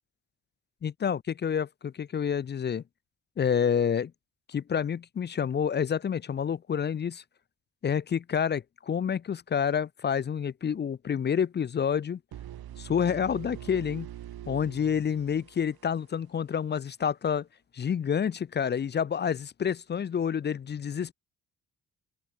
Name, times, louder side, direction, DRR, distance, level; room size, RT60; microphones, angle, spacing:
voice 1, 0.8-2.8 3.4-4.1 4.5-7.2 7.8-12.2 12.8-14.1 14.5-17.5 17.7-21.1, left 7 dB, 30° left, 0.4 m, -28 dB
sound 1, 12.3-16.2, right 11 dB, 70° right, 1.2 m, -44 dB
open air
cardioid pair, 65°, 39 cm